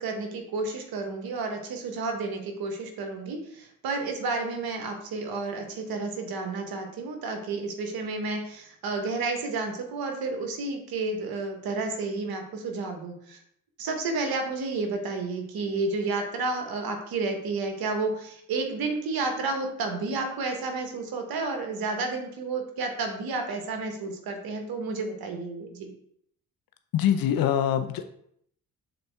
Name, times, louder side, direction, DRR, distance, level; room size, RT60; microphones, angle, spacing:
voice 1, 0.0-13.4 13.8-25.9, right 3 dB, 70° right, 4 dB, 1.3 m, -31 dB
voice 2, 26.9-28.0, left 10 dB, 65° left, 8 dB, 0.6 m, -24 dB
6.6 x 4.0 x 3.5 m, 0.70 s
supercardioid pair, 60°, 37 cm